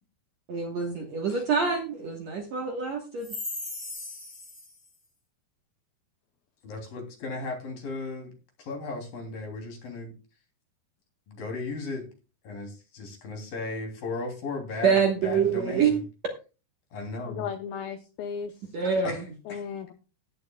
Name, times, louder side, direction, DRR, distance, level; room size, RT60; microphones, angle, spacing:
voice 1, 0.5-4.3 14.8-16.0 18.7-19.1, right 6 dB, 60° right, 2.0 m, -26 dB
voice 2, 6.6-10.1 11.3-12.1 12.4-16.0 16.9-17.5 19.0-19.6, left 3 dB, 55° left, 4.7 m, -36 dB
voice 3, 17.3-18.5 19.5-19.9, left 7 dB, 75° left, 2.3 m, -35 dB
17.0 x 11.0 x 2.3 m
omnidirectional pair, 4.8 m